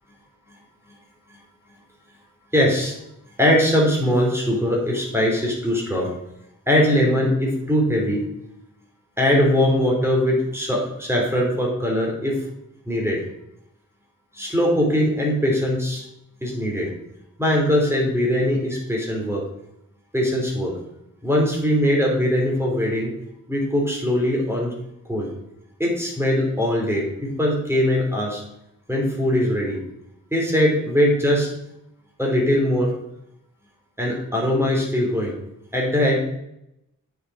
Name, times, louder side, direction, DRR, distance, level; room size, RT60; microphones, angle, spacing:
voice 1, 2.5-2.9 3.4-6.1 6.7-8.2 9.2-12.4 12.9-13.2 14.3-16.0 16.4-16.9 17.4-19.4 20.1-20.7 21.2-23.1 23.5-24.7 25.1-25.3 25.8-28.4 28.9-29.8 30.3-31.5 32.2-32.9 34.0-35.3 35.7-36.2, equal, 10° right, -2 dB, 3.2 m, -21 dB
9.1 x 6.5 x 4.8 m, 0.83 s
wide cardioid pair, 100°, 31 cm